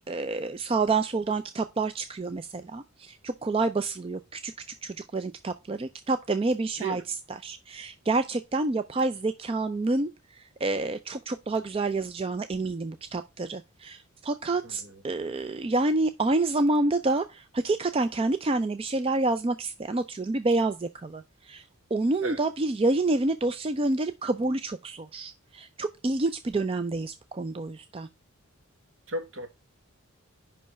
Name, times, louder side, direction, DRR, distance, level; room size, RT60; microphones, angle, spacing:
voice 1, 0.1-4.5 4.8-7.0 7.4-28.1, right 2 dB, 25° right, 0.3 m, -28 dB
voice 2, 14.6-15.0 22.2-22.4 29.1-29.5, right 2 dB, 60° right, 1.6 m, -34 dB
5.5 x 5.3 x 6.6 m
head